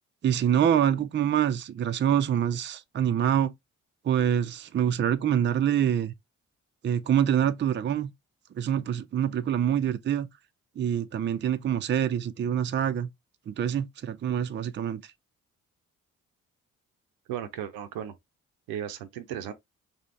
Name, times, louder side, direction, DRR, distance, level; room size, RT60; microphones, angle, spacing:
voice 1, 0.2-3.5 4.0-6.1 6.8-8.1 8.6-10.3 10.8-13.1 13.5-15.1, right 9 dB, 30° right, 0.5 m, -25 dB
voice 2, 17.3-18.1 18.7-19.5, right 10 dB, 75° right, 0.7 m, -35 dB
3.2 x 2.7 x 3.1 m
hypercardioid pair, 45°, 37 cm